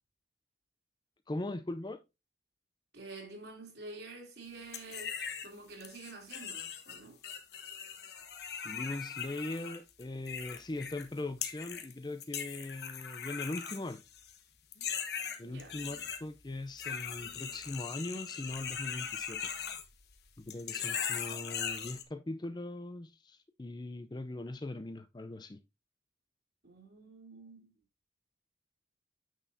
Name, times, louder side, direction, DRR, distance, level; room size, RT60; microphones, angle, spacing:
voice 1, 1.3-2.0 8.6-14.0 15.4-19.5 20.4-25.6, left 2 dB, 25° left, 0.4 m, -40 dB
voice 2, 2.9-5.1 5.4-7.2 15.4-15.8 26.6-27.7, right 3 dB, 65° right, 2.7 m, -48 dB
sound 1, 4.7-5.5 5.8-11.1 11.4-11.9 12.2-14.4 14.7-16.2 16.8-20.2 20.5-22.0, left 7 dB, 60° left, 1.1 m, -39 dB
9.1 x 6.2 x 2.6 m
head